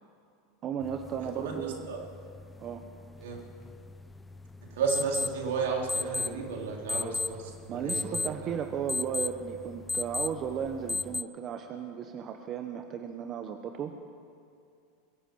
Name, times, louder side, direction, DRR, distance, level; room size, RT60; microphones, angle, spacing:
voice 1, 0.6-1.9 2.6-2.8 7.7-14.0, right 8 dB, 40° right, 6 dB, 1.0 m, -35 dB
sound 1, 0.8-11.2, left 3 dB, 15° left, 0.5 m, -37 dB
voice 2, 1.4-2.0 3.2-3.4 4.7-8.5, right 5 dB, 80° right, 0 dB, 3.4 m, -33 dB
22.5 x 8.1 x 7.8 m, 2.5 s
hypercardioid pair, 100°, 0 cm